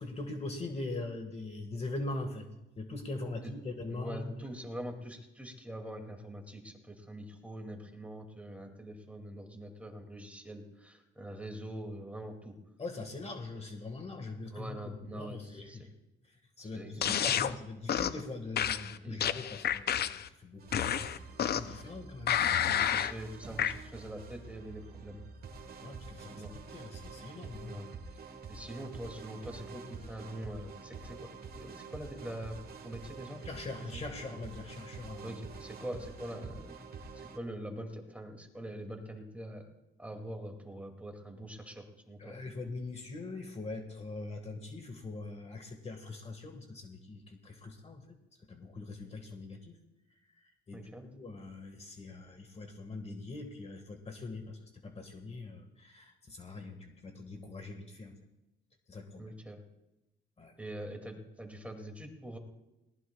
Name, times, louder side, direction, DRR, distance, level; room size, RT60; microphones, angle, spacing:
voice 1, 0.0-2.5 2.8-4.5 12.8-15.9 16.3-22.4 25.8-27.8 33.4-35.4 42.2-48.1 48.5-49.8 50.4-54.6 54.8-58.2 58.9-59.3 60.4-60.5, left 2 dB, 30° left, 4 dB, 1.7 m, -42 dB
voice 2, 3.9-12.6 14.5-15.9 16.6-17.4 19.0-19.3 21.8-22.0 22.6-25.2 26.3-26.5 27.6-27.9 28.5-31.3 31.5-33.4 33.9-34.0 35.2-36.8 37.1-39.6 40.0-42.3 50.7-51.1 59.2-59.6 60.6-62.4, right 1 dB, 5° right, 3 dB, 2.4 m, -44 dB
sound 1, 17.0-17.5 17.9-18.2 18.6-20.3 20.7-21.8 22.3-23.1 23.6-23.7, left 9 dB, 55° left, 0.6 m, -30 dB
sound 2, 20.6-37.4, right 5 dB, 50° right, 1.6 m, -47 dB
20.0 x 18.5 x 2.3 m, 0.96 s
cardioid pair, 90°, 20 cm